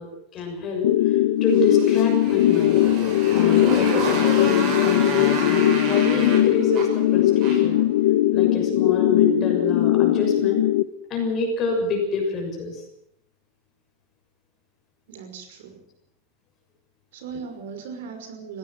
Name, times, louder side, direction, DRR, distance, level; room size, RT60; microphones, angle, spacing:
voice 1, 0.0-2.8 3.3-7.8 8.3-10.6 11.1-12.8, left 3 dB, 25° left, 2 dB, 6.7 m, -27 dB
sound 1, 0.8-10.8, left 14 dB, 70° left, 1.0 m, -20 dB
Motorcycle, 1.5-7.8, right 3 dB, 35° right, 6.8 m, -30 dB
voice 2, 15.1-15.8 17.1-18.6, right 6 dB, 80° right, 7 dB, 5.7 m, -38 dB
21.0 x 16.5 x 7.9 m, 0.71 s
supercardioid pair, 175°, 0 cm